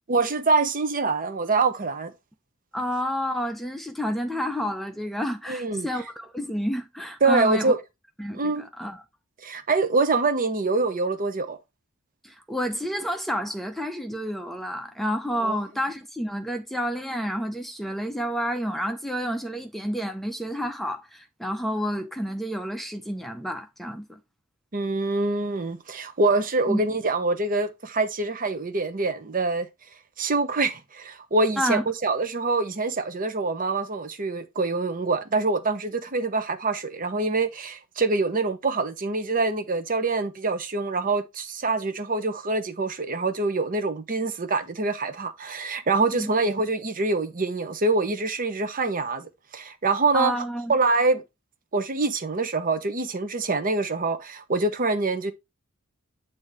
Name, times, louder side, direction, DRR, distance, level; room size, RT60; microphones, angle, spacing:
voice 1, 0.1-2.1 5.5-5.9 7.2-7.8 8.3-8.6 9.4-11.6 15.4-15.6 24.7-29.7 30.2-50.3 50.7-51.2 51.7-55.3, right 3 dB, 40° right, 0.9 m, -25 dB
voice 2, 2.7-7.7 8.2-9.0 12.2-24.2 26.7-26.8 31.6-31.9 46.1-46.3 50.1-50.8, equal, ahead, 0.7 m, -29 dB
8.4 x 2.8 x 4.8 m
head